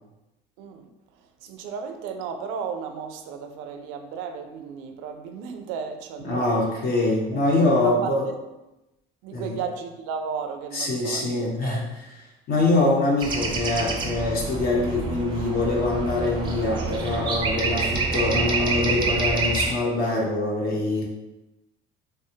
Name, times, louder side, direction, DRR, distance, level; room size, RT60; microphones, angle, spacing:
voice 1, 0.6-0.9 1.2-6.5 7.3-7.4 7.8-8.1 9.2-11.9, right 6 dB, 90° right, 0.4 m, -34 dB
voice 2, 6.2-8.2 9.3-9.5 10.7-11.9 12.5-21.0, left 2 dB, 50° left, 0.8 m, -24 dB
sound 1, 13.2-19.7, right 3 dB, 25° right, 0.4 m, -27 dB
3.4 x 2.0 x 2.7 m
cardioid pair, 135°, 20 cm